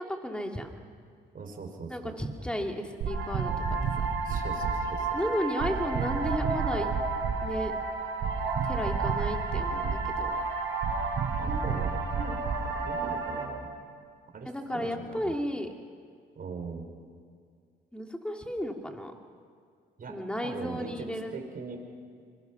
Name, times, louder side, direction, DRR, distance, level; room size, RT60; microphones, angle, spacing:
voice 1, 0.1-0.7 1.9-4.1 5.1-6.9 7.4-7.7 8.6-10.4 14.4-15.7 17.9-19.1 20.1-21.3, equal, 5° left, 3 dB, 2.6 m, -33 dB
voice 2, 1.3-2.1 4.2-5.1 11.4-13.7 14.3-15.3 16.4-16.9 20.0-21.8, right 4 dB, 45° right, 3 dB, 4.3 m, -40 dB
sound 1, 3.0-13.4, right 4 dB, 75° right, 4.5 m, -30 dB
25.0 x 22.5 x 5.9 m, 2.2 s
cardioid pair, 90°, 20 cm